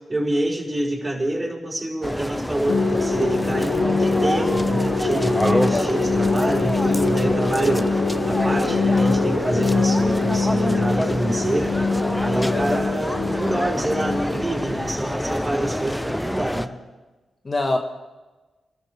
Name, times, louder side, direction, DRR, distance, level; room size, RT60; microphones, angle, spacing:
voice 1, 0.0-8.0 8.3-11.7 12.2-16.7, right 1 dB, 25° right, -3 dB, 5.7 m, -26 dB
sound 1, 2.0-16.7, equal, 5° left, 0.7 m, -27 dB
sound 2, 2.7-15.4, left 3 dB, 85° left, 2.4 m, -23 dB
voice 2, 12.5-12.8 17.4-17.8, left 2 dB, 40° left, 3 dB, 1.6 m, -24 dB
28.5 x 13.5 x 3.5 m, 1.2 s
cardioid pair, 60°, 0 cm